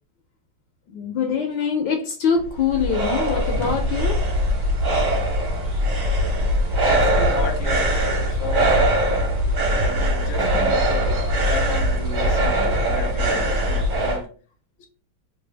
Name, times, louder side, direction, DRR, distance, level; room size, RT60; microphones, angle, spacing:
voice 1, 0.9-4.2 10.4-10.7 12.7-12.8, left 6 dB, 75° left, 1.2 m, -24 dB
sound 1, 2.4-14.2, equal, 45° right, 1.2 m, -21 dB
voice 2, 6.9-8.0 8.3-9.2 9.8-14.3, left 3 dB, 45° left, 0.8 m, -33 dB
3.3 x 2.4 x 3.2 m
omnidirectional pair, 2.2 m